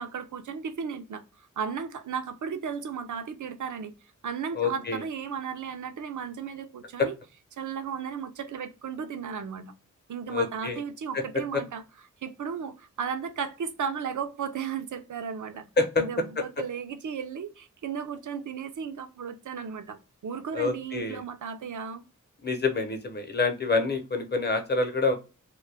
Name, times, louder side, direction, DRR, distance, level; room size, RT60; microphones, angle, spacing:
voice 1, 0.0-3.9 4.2-7.1 7.6-9.7 10.1-11.8 12.2-15.7 16.0-22.0, right 6 dB, 70° right, 0.5 m, -35 dB
voice 2, 4.5-5.0 7.0-7.1 10.3-10.8 11.1-11.2 15.8-16.0 16.4-16.5 20.5-21.2 22.4-25.1, left 3 dB, 30° left, 0.8 m, -27 dB
2.3 x 2.2 x 3.3 m
cardioid pair, 50°, 32 cm